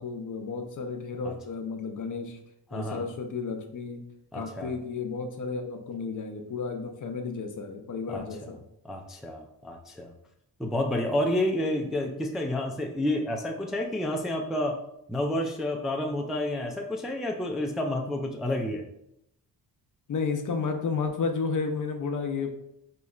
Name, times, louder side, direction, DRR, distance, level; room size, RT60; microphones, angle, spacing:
voice 1, 0.0-2.4 2.7-4.0 4.3-8.6 20.1-22.5, left 5 dB, 45° left, 5 dB, 0.7 m, -32 dB
voice 2, 2.7-3.1 4.3-4.7 8.1-8.5 8.8-10.1 10.6-14.8 15.1-18.8, left 1 dB, ahead, 1 dB, 0.4 m, -30 dB
4.1 x 3.0 x 2.4 m, 0.80 s
supercardioid pair, 55°, 44 cm